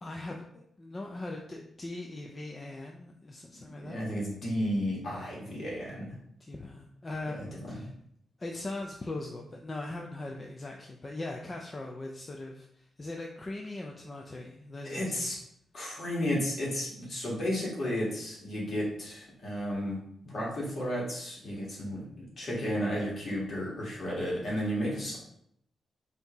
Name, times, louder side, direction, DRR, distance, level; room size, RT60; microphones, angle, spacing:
voice 1, 0.0-4.1 6.4-7.9 8.4-15.3, left 2 dB, 25° left, 1 dB, 0.4 m, -40 dB
voice 2, 3.8-6.1 7.2-7.8 14.8-15.4 15.7-20.0 20.2-25.2, equal, 50° left, -5 dB, 1.6 m, -33 dB
5.5 x 2.7 x 2.9 m, 0.72 s
wide cardioid pair, 140°, 0 cm